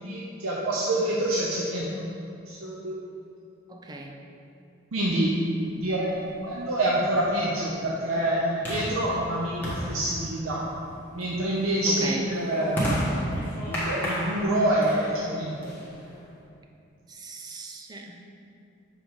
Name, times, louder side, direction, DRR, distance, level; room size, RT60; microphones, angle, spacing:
voice 1, 0.0-2.0 2.5-3.1 4.9-5.4 5.7-6.1 6.4-10.7 11.1-13.3 13.7-15.7, right 1 dB, 90° right, -5 dB, 0.7 m, -27 dB
voice 2, 3.7-4.1 11.9-12.2 17.1-18.2, right 2 dB, 20° right, 2 dB, 0.5 m, -37 dB
sound 1, 5.9-16.3, equal, 10° left, 1.3 m, -34 dB
6.7 x 3.9 x 4.7 m, 2.6 s
head